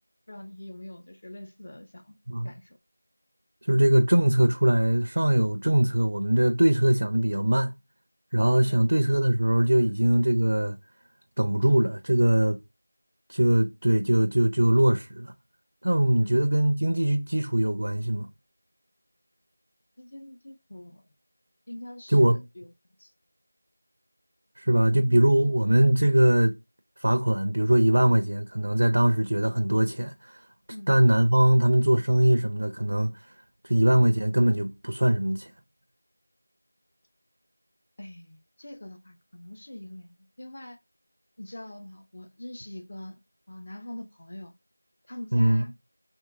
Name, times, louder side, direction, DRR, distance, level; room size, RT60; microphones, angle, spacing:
voice 1, 0.3-2.2 2.4-2.8 8.6-8.8 9.8-9.9 16.2-16.4 20.0-21.0 21.7-22.7 23.0-23.1 30.7-30.9 38.0-40.8 41.4-43.2 43.5-44.5 45.0-45.7, left 1 dB, 30° left, 0.5 m, -43 dB
voice 2, 3.7-7.7 8.3-10.8 11.4-12.6 13.3-15.3 15.8-18.3 22.1-22.4 24.6-26.5 27.0-30.4 30.9-33.1 33.6-35.5 45.3-45.7, right 1 dB, 55° right, 0.5 m, -22 dB
3.6 x 2.8 x 4.6 m
figure-of-eight pair, 175°, 0 cm